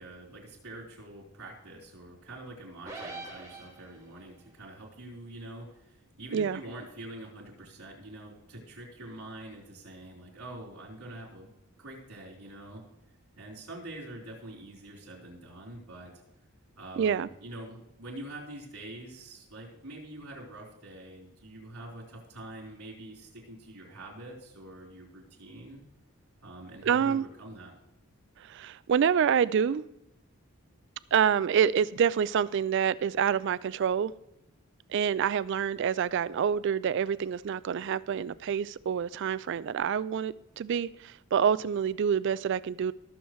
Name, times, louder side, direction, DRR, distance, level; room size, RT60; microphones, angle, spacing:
voice 1, 0.0-11.5 11.8-12.8 13.4-16.1 16.8-25.8 26.4-27.7, right 1 dB, 85° right, 4.1 m, -45 dB
sound 1, 2.9-4.2, right 2 dB, 15° right, 2.4 m, -42 dB
voice 2, 17.0-17.3 26.8-27.2 28.4-29.8 31.1-34.1 34.9-42.9, right 7 dB, 55° right, 0.3 m, -27 dB
19.0 x 7.1 x 3.1 m
head